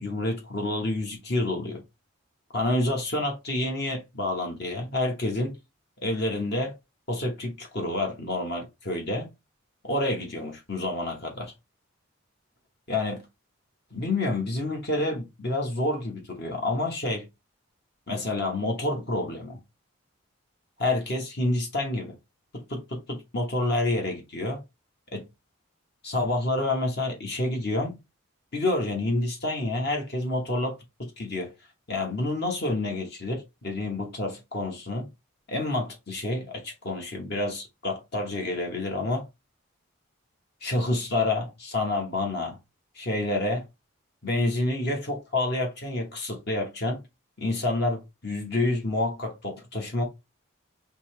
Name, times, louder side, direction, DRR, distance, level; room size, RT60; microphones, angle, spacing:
voice 1, 0.0-1.8 2.5-5.5 6.0-6.7 7.1-9.3 9.8-11.5 12.9-13.2 13.9-17.3 18.1-19.6 20.8-22.1 22.7-24.6 25.1-25.3 26.0-28.0 28.5-30.8 31.2-31.5 31.9-35.1 35.5-39.2 40.6-42.6 42.9-43.6 44.2-47.0 47.4-50.0, left 2 dB, 50° left, 1.2 m, -28 dB
5.3 x 2.9 x 3.2 m
head